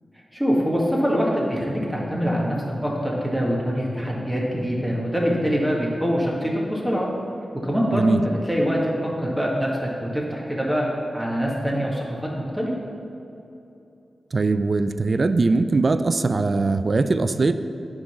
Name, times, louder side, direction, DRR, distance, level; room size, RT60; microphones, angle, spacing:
voice 1, 0.3-7.1 7.6-8.8 9.2-9.7 10.0-10.9 11.1-12.0 12.5-12.7, equal, 5° right, -4 dB, 1.8 m, -24 dB
voice 2, 14.3-17.5, right 3 dB, 55° right, 11 dB, 0.4 m, -21 dB
9.6 x 3.9 x 6.1 m, 2.8 s
cardioid pair, 45°, 0 cm